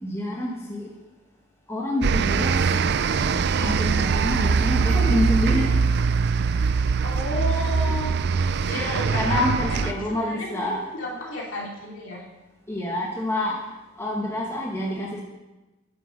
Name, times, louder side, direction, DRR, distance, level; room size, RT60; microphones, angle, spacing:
voice 1, 0.0-0.9 1.7-2.7 3.6-5.8 8.7-10.8 12.7-13.6 14.0-15.2, left 1 dB, 10° left, -2 dB, 1.1 m, -27 dB
sound 1, 2.0-9.9, right 5 dB, 50° right, 0.4 m, -22 dB
voice 2, 7.0-8.1 8.7-12.2, left 1 dB, 60° left, -3 dB, 2.7 m, -33 dB
9.7 x 7.9 x 6.4 m, 1.1 s
head